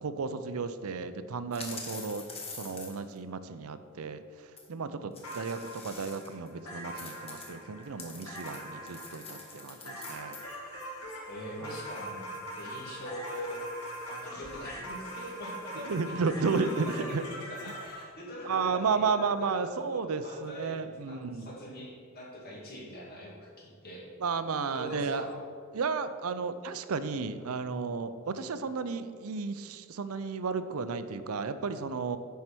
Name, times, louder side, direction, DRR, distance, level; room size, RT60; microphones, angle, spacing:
voice 1, 0.0-2.3 2.5-4.2 4.7-10.4 11.6-11.8 15.8-17.2 18.4-21.5 24.2-25.2 25.7-32.2, right 4 dB, 80° right, 11 dB, 0.5 m, -33 dB
sound 1, 1.5-3.2 4.6-4.7 5.1-6.5 7.0-10.4, left 3 dB, 30° left, 1.3 m, -45 dB
sound 2, 5.2-18.0, equal, 85° left, 1.8 m, -42 dB
voice 2, 11.2-12.3 12.6-13.6 14.0-24.1 24.7-25.4, equal, 45° left, -3 dB, 2.3 m, -43 dB
9.7 x 4.7 x 6.0 m, 2.2 s
head